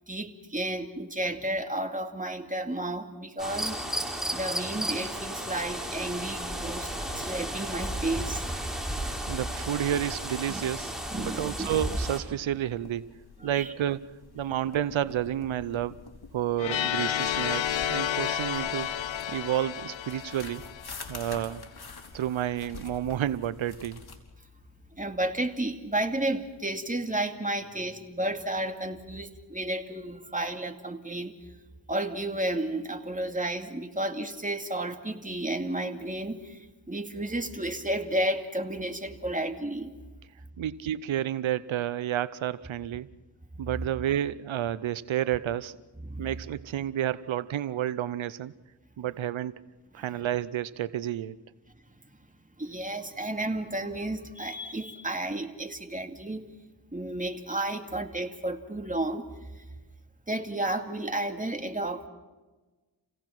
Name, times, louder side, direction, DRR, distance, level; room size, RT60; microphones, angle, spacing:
voice 1, 0.1-8.4 10.5-10.6 11.1-11.7 13.4-13.7 24.9-31.4 31.9-40.0 46.0-46.3 50.0-50.1 51.9-52.0 52.6-56.5 56.9-59.2 59.5-59.6 60.3-62.1, right 1 dB, 15° right, 5 dB, 2.6 m, -32 dB
sound 1, 3.4-12.2, right 1 dB, ahead, 5.0 m, -33 dB
voice 2, 9.3-13.1 13.4-14.1 14.3-16.0 16.3-18.9 19.3-20.7 21.1-21.6 22.1-24.0 40.6-43.1 43.6-45.8 46.2-48.5 49.0-49.5 49.9-51.4, right 11 dB, 90° right, 16 dB, 0.7 m, -30 dB
sound 2, 12.5-24.2, left 4 dB, 55° left, 3.8 m, -47 dB
sound 3, 16.6-21.4, left 10 dB, 80° left, 0.8 m, -31 dB
29.0 x 17.0 x 6.0 m, 1.2 s
cardioid pair, 50°, 45 cm